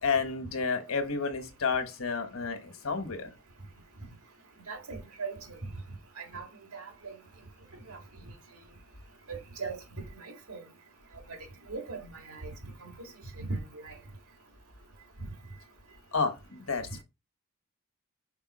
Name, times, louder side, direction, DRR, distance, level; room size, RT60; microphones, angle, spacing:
voice 1, 0.0-3.3 16.1-17.0, left 5 dB, 70° left, 1.3 m, -31 dB
voice 2, 4.7-5.6 6.2-6.5 6.7-7.2 7.9-8.0 9.3-10.6 11.3-11.4 11.7-12.9 13.4-13.9, right 4 dB, 90° right, 2.0 m, -39 dB
5.6 x 4.6 x 4.2 m
head